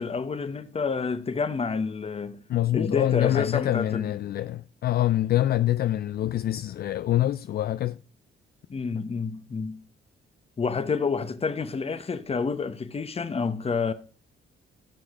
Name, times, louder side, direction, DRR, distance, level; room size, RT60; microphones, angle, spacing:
voice 1, 0.0-2.4 2.7-4.1 8.7-9.8 10.6-13.9, left 5 dB, 30° left, 1.0 m, -28 dB
voice 2, 2.5-8.0, left 13 dB, 50° left, 0.4 m, -25 dB
16.0 x 6.2 x 3.7 m
cardioid pair, 90°, 20 cm